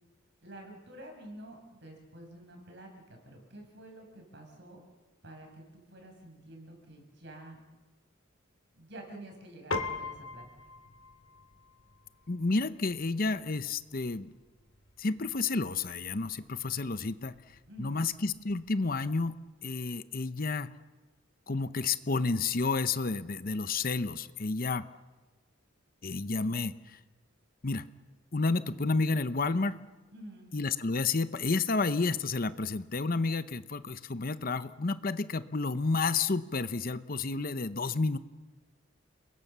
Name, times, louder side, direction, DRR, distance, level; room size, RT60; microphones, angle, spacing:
voice 1, 0.4-4.8 5.2-7.6 8.7-10.4 17.7-18.1 28.7-28.9 30.1-30.5, right 1 dB, 55° right, 2 dB, 6.3 m, -49 dB
Piano, 9.7-19.3, left 3 dB, 75° left, 2.2 m, -44 dB
voice 2, 12.3-14.3 15.0-17.3 17.8-19.3 19.6-20.7 21.5-24.9 26.0-27.0 27.6-27.9 28.3-29.8 30.5-38.2, left 3 dB, 45° left, 13 dB, 0.8 m, -30 dB
29.5 x 22.0 x 6.8 m, 1.2 s
head